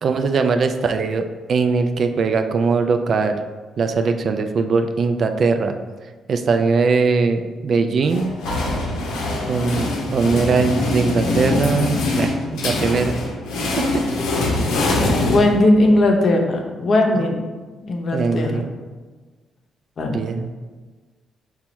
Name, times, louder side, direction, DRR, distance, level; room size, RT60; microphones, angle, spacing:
voice 1, 0.0-3.4 3.8-5.8 6.3-8.4 9.5-13.1 13.6-14.0 17.1-17.3 18.1-18.7 20.1-20.5, right 4 dB, 55° right, 7 dB, 0.3 m, -20 dB
sound 1, 8.1-16.0, left 2 dB, 90° left, 0.7 m, -23 dB
voice 2, 15.3-17.4 17.9-18.6 20.0-20.2, left 1 dB, 50° left, 2 dB, 0.7 m, -18 dB
4.0 x 2.3 x 4.4 m, 1.3 s
cardioid pair, 90°, 0 cm